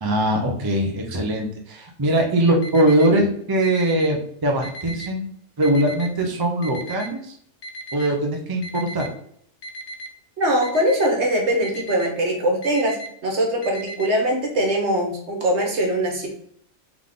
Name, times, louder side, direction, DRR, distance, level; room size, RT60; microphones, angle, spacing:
voice 1, 0.0-7.3 7.9-9.0, right 1 dB, 25° right, 1 dB, 0.6 m, -21 dB
Alarm, 2.6-3.1 3.6-4.1 4.6-5.1 5.6-6.1 6.6-7.1 7.6-8.1 8.6-9.1 9.6-10.1 10.6-11.1 11.6-12.1 12.6-13.1 13.6-14.1, right 1 dB, 55° left, 0.8 m, -35 dB
voice 2, 10.4-13.0 13.2-16.3, right 1 dB, 65° right, 1 dB, 1.4 m, -22 dB
3.6 x 3.6 x 3.7 m, 0.66 s
omnidirectional pair, 1.3 m